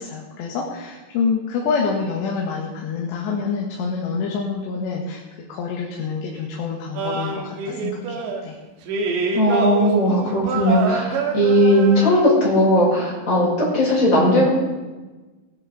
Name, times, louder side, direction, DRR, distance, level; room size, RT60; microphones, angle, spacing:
voice 1, 0.0-5.2 5.5-8.6, left 5 dB, 80° left, -1 dB, 3.6 m, -27 dB
sound 1, 7.0-8.4 8.9-12.1, right 4 dB, 80° right, 3.9 m, -26 dB
voice 2, 9.3-14.5, equal, 20° left, -7 dB, 6.3 m, -17 dB
19.0 x 11.0 x 4.1 m, 1.2 s
omnidirectional pair, 5.0 m